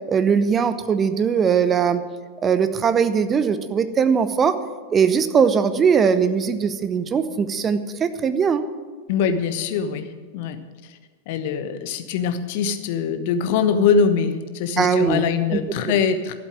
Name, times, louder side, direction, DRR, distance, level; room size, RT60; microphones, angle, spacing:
voice 1, 0.1-2.0 2.4-4.6 4.9-8.6 14.8-15.6, right 6 dB, 25° right, 12 dB, 0.8 m, -20 dB
voice 2, 9.1-10.1 10.3-10.6 11.3-16.3, left 6 dB, 50° left, 9 dB, 1.0 m, -22 dB
12.0 x 7.7 x 8.9 m, 1.5 s
figure-of-eight pair, 90°, 0 cm